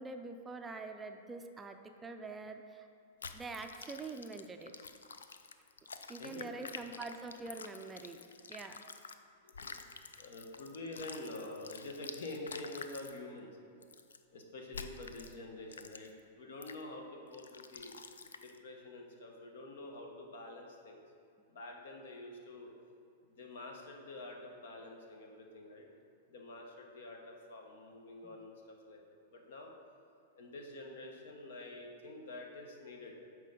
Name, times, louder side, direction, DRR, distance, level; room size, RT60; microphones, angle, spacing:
voice 1, 0.0-2.9 3.3-4.7 6.1-8.2 8.5-8.8 28.2-28.3, right 3 dB, 15° right, 6 dB, 0.4 m, -45 dB
sound 1, 3.2-9.2 9.5-13.2 13.8-14.2 14.7-15.3 15.7-16.2 16.6-16.8 17.3-18.6, left 5 dB, 90° left, 0.3 m, -49 dB
voice 2, 6.2-6.5 9.4-9.8 10.1-13.5 14.3-17.9 18.4-21.0 21.5-22.7 23.2-25.9 26.3-29.7 30.4-33.2, left 2 dB, 70° left, 2 dB, 1.0 m, -47 dB
7.4 x 4.5 x 3.8 m, 2.4 s
hypercardioid pair, 115°, 0 cm